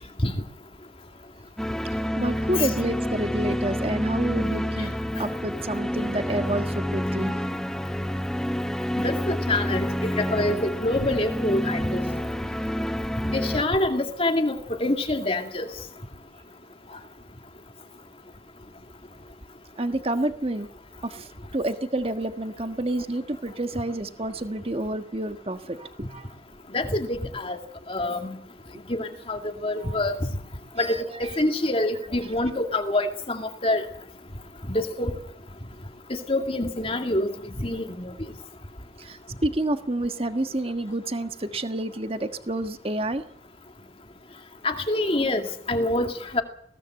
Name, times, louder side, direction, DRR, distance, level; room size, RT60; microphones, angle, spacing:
sound 1, 1.6-13.6, equal, 5° left, 0.8 m, -28 dB
voice 1, 2.1-4.9 5.2-7.3 19.8-20.7 21.0-26.3 29.8-30.0 30.8-31.3 39.0-43.2, right 1 dB, 35° right, 1.5 m, -29 dB
voice 2, 9.0-12.0 13.3-15.7 26.7-27.6 27.9-28.4 28.9-30.2 30.8-33.9 34.7-35.2 36.1-38.1 44.6-46.4, left 1 dB, 30° left, 2.2 m, -26 dB
21.5 x 17.0 x 7.8 m
head